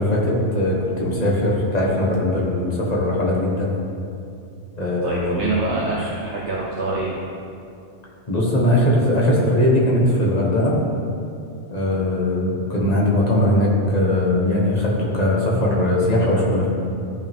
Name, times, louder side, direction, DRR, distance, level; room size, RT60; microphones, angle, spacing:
voice 1, 0.0-3.7 4.8-5.4 8.3-10.8 11.7-16.7, left 1 dB, 35° left, -4 dB, 1.7 m, -20 dB
voice 2, 5.0-7.2, right 2 dB, 70° right, -5 dB, 1.3 m, -25 dB
13.5 x 5.6 x 3.7 m, 2.6 s
omnidirectional pair, 1.2 m